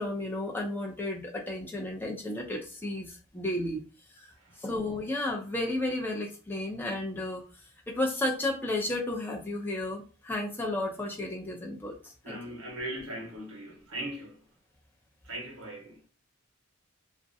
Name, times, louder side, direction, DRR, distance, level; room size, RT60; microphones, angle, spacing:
voice 1, 0.0-3.8 4.6-7.4 7.9-12.4, left 1 dB, 10° left, 0.5 m, -33 dB
voice 2, 4.3-4.6 12.2-14.4 15.2-16.0, right 1 dB, 70° right, 1.0 m, -39 dB
2.6 x 2.1 x 2.5 m
head